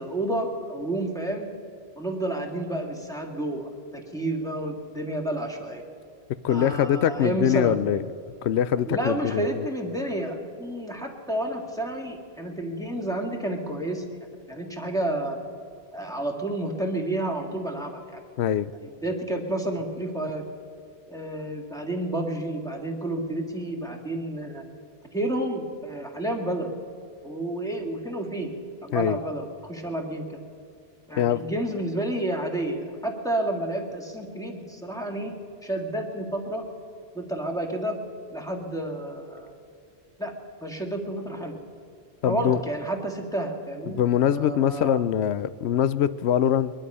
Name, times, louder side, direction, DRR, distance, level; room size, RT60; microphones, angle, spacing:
voice 1, 0.0-1.5 2.0-5.8 6.5-7.8 8.8-14.0 14.5-15.4 15.9-18.2 18.8-20.4 21.1-24.6 25.1-26.8 27.2-28.5 28.8-30.4 31.1-35.3 35.6-36.6 37.1-38.0 38.3-39.5 40.2-40.3 40.6-41.6 42.3-44.0 44.3-45.0, right 1 dB, 5° left, 2 dB, 1.8 m, -30 dB
voice 2, 6.4-8.0 8.4-9.6 18.4-18.7 28.9-29.2 31.2-31.4 42.2-42.6 43.9-46.7, left 10 dB, 70° left, 16 dB, 0.8 m, -23 dB
22.0 x 11.5 x 5.5 m, 2.4 s
omnidirectional pair, 1.2 m